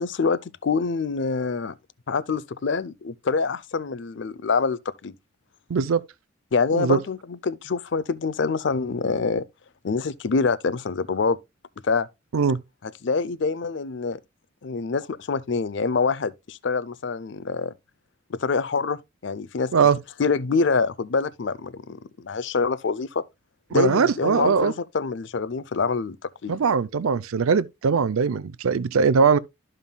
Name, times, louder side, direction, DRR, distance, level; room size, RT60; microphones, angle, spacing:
voice 1, 0.0-1.7 2.1-5.1 6.5-9.4 9.8-11.4 11.8-12.1 12.8-14.2 14.6-17.7 18.3-19.7 20.2-23.2 23.7-26.2 26.4-26.5, left 4 dB, 60° left, 0.5 m, -25 dB
voice 2, 5.7-6.0 6.7-7.0 12.3-12.6 19.7-20.0 23.7-24.7 26.5-29.4, right 5 dB, 90° right, 0.5 m, -21 dB
13.0 x 5.4 x 2.2 m
head